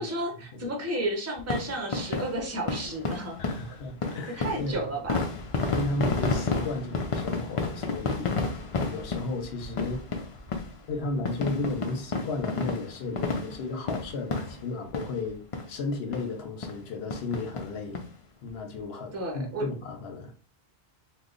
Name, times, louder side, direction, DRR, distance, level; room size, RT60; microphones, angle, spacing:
voice 1, 0.0-3.4 4.4-5.2 19.1-19.6, right 1 dB, 15° right, 0.7 m, -32 dB
sound 1, 1.4-15.3 15.5-15.7 16.1-16.2 16.6-16.8 17.1-18.1 18.5-18.6 18.8-18.9, left 3 dB, 50° left, 0.4 m, -31 dB
voice 2, 3.4-4.9 5.7-10.0 10.9-15.4 15.7-18.0 18.4-20.3, left 2 dB, 75° left, 0.9 m, -34 dB
2.9 x 2.1 x 3.7 m
omnidirectional pair, 1.1 m